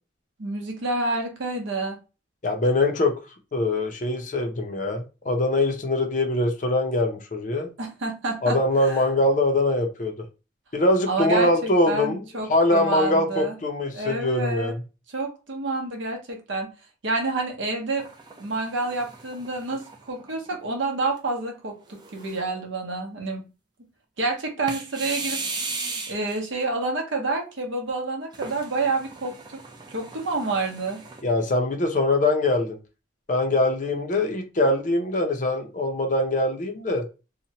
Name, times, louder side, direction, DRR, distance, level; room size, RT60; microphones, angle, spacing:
voice 1, 0.4-2.0 7.8-9.0 11.1-13.5 13.9-14.8 15.1-16.7 17.0-18.0 18.4-23.4 24.2-25.4 26.1-29.6 29.9-31.0, right 3 dB, 70° right, 0.8 m, -28 dB
voice 2, 2.4-3.1 3.5-7.7 8.4-10.1 10.7-12.2 12.5-14.8 31.2-32.8 33.3-37.0, left 2 dB, 40° left, 0.5 m, -23 dB
sound 1, 18.0-20.5 21.1-21.2 21.9-22.6 24.7-26.4 28.3-31.2, right 3 dB, 20° right, 0.4 m, -37 dB
2.8 x 2.1 x 2.8 m
head